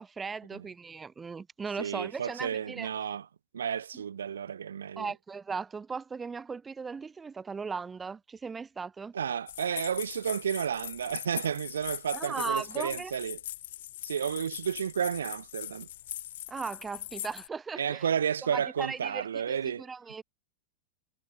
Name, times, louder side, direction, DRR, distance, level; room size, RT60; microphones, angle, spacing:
voice 1, 0.0-2.9 5.0-9.1 12.1-13.1 16.5-18.1 18.5-20.2, right 5 dB, 15° right, 3.9 m, -37 dB
voice 2, 1.8-3.3 3.5-5.1 9.1-13.4 14.0-15.9 17.8-19.8, right 8 dB, 90° right, 0.6 m, -32 dB
sound 1, 9.5-17.5, left 13 dB, 70° left, 3.8 m, -41 dB
hypercardioid pair, 115°, 0 cm